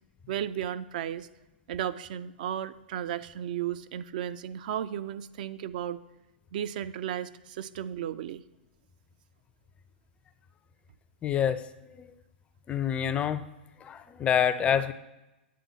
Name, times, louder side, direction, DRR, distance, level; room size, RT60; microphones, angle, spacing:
voice 1, 0.3-1.3 1.7-6.0 6.5-8.4, right 10 dB, 50° right, 13 dB, 0.4 m, -34 dB
voice 2, 11.2-12.1 12.7-13.4 13.8-14.9, left 8 dB, 20° left, 13 dB, 0.4 m, -27 dB
9.4 x 3.7 x 6.9 m, 0.99 s
figure-of-eight pair, 105°, 6 cm